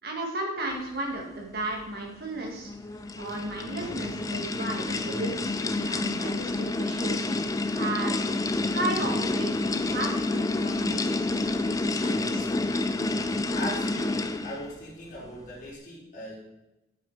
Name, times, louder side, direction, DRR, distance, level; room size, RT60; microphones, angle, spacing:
voice 1, 0.0-2.7 3.2-7.3 7.7-8.1 8.7-12.3, right 2 dB, 50° right, 0 dB, 2.3 m, -34 dB
sound 1, 0.8-0.9 2.3-2.9 3.8-4.6 4.9-5.4 6.2-6.3 7.1-7.2 8.2-9.6 11.5-13.5, equal, 75° right, 3.1 m, -48 dB
sound 2, 2.5-14.7, left 2 dB, 15° left, 0.4 m, -29 dB
voice 2, 12.0-12.4 12.7-12.9 13.5-16.4, left 1 dB, 40° left, -6 dB, 4.2 m, -39 dB
8.9 x 8.0 x 5.1 m, 0.94 s
head